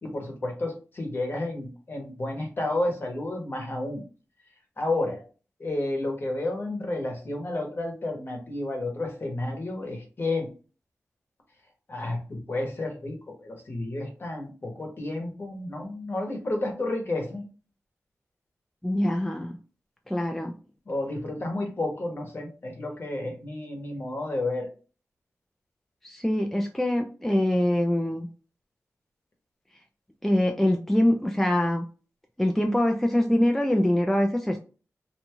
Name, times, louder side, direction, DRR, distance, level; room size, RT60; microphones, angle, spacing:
voice 1, 0.0-4.0 4.8-5.2 5.6-10.5 11.9-17.5 20.9-24.7, left 2 dB, 40° left, 2 dB, 0.9 m, -31 dB
voice 2, 18.8-19.6 20.1-20.5 26.0-28.3 30.2-31.8 32.4-34.6, left 1 dB, 5° left, 3 dB, 0.3 m, -24 dB
2.6 x 2.3 x 2.9 m, 0.36 s
wide cardioid pair, 85°, 5 cm